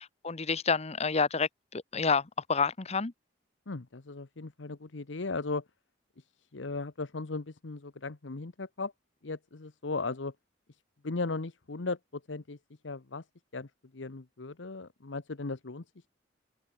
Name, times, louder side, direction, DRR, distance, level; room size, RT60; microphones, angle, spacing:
voice 1, 0.0-3.1, left 5 dB, 35° left, 1.0 m, -29 dB
voice 2, 3.7-5.7 6.2-8.9 9.2-10.3 10.7-13.2 13.5-16.1, left 3 dB, 85° left, 1.0 m, -37 dB
open air
head